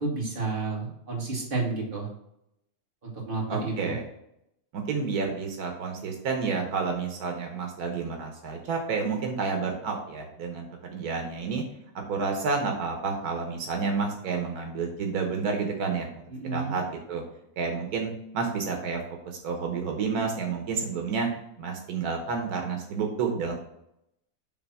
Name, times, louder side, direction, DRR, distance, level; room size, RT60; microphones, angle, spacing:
voice 1, 0.0-2.1 3.0-4.0 16.3-16.7, right 3 dB, 35° right, -4 dB, 2.3 m, -31 dB
voice 2, 3.5-4.0 4.7-11.6 12.1-16.1 16.5-17.2 17.6-19.0 19.3-21.3 21.6-23.5, right 5 dB, 85° right, 2 dB, 1.5 m, -30 dB
6.6 x 3.5 x 5.9 m, 0.80 s
omnidirectional pair, 1.6 m